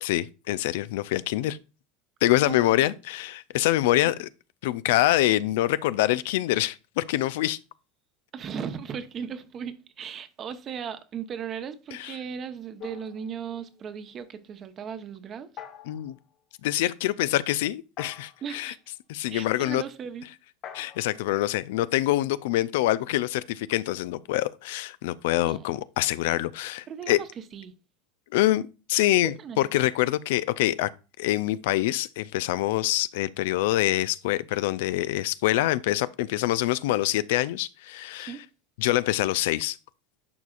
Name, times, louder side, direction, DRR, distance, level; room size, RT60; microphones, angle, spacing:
voice 1, 0.0-1.6 2.2-4.3 4.6-7.6 12.0-12.1 15.9-16.2 16.6-18.7 19.1-19.8 20.7-27.2 28.3-30.9 31.2-38.3 38.8-39.8, left 15 dB, 70° left, 0.3 m, -25 dB
voice 2, 2.4-2.8 3.9-4.2 8.3-15.5 18.4-18.8 19.3-20.3 25.5-25.7 26.9-27.7 29.4-29.6 38.2-38.4, right 7 dB, 40° right, 0.9 m, -37 dB
sound 1, 12.8-13.9 15.6-16.2 18.0-18.6 20.6-22.4, left 8 dB, 50° left, 1.1 m, -46 dB
10.5 x 4.7 x 2.4 m
hypercardioid pair, 90°, 0 cm